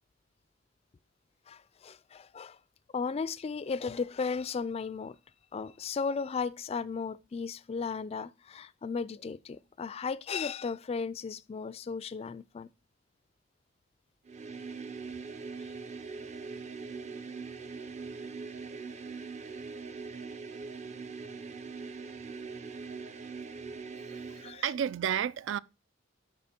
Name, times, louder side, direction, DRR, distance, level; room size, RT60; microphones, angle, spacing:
voice 1, 1.5-2.6 2.9-5.2 5.5-12.7 24.4-24.6, left 5 dB, 30° left, 0.3 m, -35 dB
sound 1, 14.2-24.6, right 4 dB, 35° right, 0.6 m, -42 dB
voice 2, 24.0-25.6, right 9 dB, 75° right, 0.3 m, -32 dB
8.6 x 4.9 x 4.3 m
head